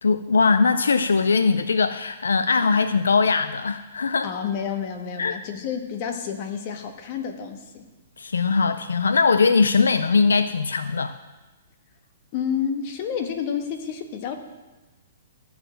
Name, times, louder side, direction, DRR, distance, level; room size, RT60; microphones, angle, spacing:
voice 1, 0.0-4.3 5.2-5.4 8.2-11.1, left 4 dB, 85° left, 11 dB, 0.4 m, -20 dB
voice 2, 4.2-7.8 12.3-14.4, left 7 dB, 45° left, 5 dB, 1.4 m, -29 dB
14.0 x 4.7 x 7.6 m, 1.2 s
hypercardioid pair, 130°, 0 cm